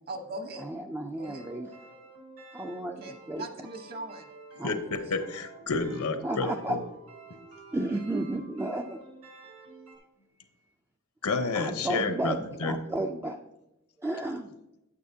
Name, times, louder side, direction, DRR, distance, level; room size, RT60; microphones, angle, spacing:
voice 1, 0.1-0.7 1.2-1.4 3.0-4.3 4.5-5.2, right 2 dB, 45° right, 5 dB, 1.1 m, -41 dB
voice 2, 0.6-1.7 2.5-3.4 4.6-4.7 6.2-6.8 7.7-9.0 11.5-13.4 14.0-14.5, right 1 dB, 10° right, 3 dB, 0.3 m, -32 dB
sound 1, 1.2-10.0, right 3 dB, 70° right, 1.9 m, -50 dB
voice 3, 4.6-6.8 11.2-12.7, left 4 dB, 75° left, 8 dB, 0.9 m, -30 dB
9.3 x 8.5 x 2.7 m, 0.92 s
head